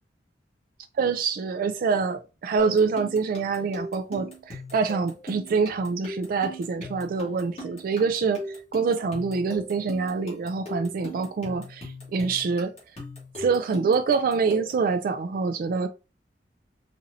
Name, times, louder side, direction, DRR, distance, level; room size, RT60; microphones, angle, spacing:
voice 1, 1.0-12.7 13.4-15.9, right 5 dB, 55° right, 0.3 m, -25 dB
sound 1, 2.6-14.9, left 1 dB, 35° left, 1.7 m, -40 dB
4.2 x 2.6 x 2.6 m
head